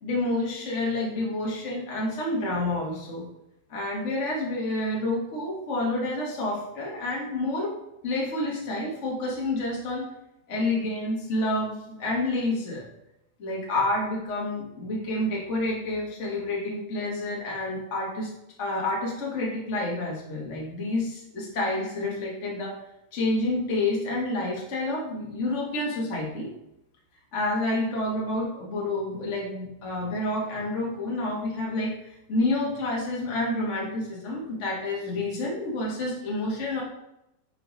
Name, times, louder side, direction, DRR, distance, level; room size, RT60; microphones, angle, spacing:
voice 1, 0.0-3.3 3.7-7.7 8.0-10.1 10.5-12.8 13.4-18.3 18.6-22.8 23.1-26.5 27.3-36.8, left 2 dB, 60° left, -3 dB, 0.7 m, -29 dB
6.9 x 6.8 x 4.0 m, 0.85 s
omnidirectional pair, 4.1 m